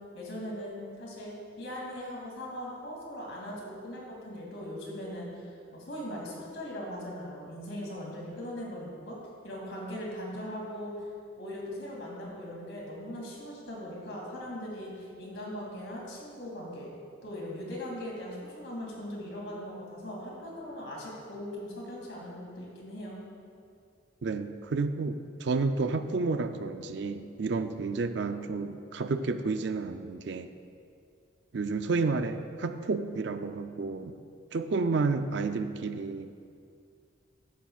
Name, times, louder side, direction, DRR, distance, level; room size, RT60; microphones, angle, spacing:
voice 1, 0.1-9.2 9.4-11.1 11.4-16.9 17.2-23.2, equal, 60° left, -3 dB, 2.7 m, -40 dB
voice 2, 24.2-30.5 31.5-34.2 34.5-36.4, right 4 dB, 55° right, 9 dB, 0.4 m, -31 dB
14.0 x 10.0 x 2.4 m, 2.4 s
head